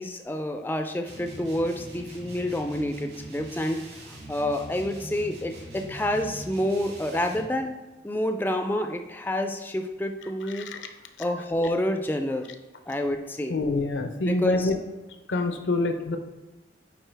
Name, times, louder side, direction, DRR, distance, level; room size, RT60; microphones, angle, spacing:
voice 1, 0.0-3.8 4.1-7.8 8.0-10.7 11.2-12.5 12.9-13.6 14.3-14.7, left 1 dB, 10° left, 5 dB, 0.3 m, -28 dB
sound 1, 1.1-7.5, right 1 dB, 65° right, 2.3 m, -42 dB
voice 2, 13.5-14.8 15.3-16.2, left 2 dB, 90° left, 7 dB, 0.7 m, -26 dB
9.0 x 4.0 x 3.4 m, 1.1 s
head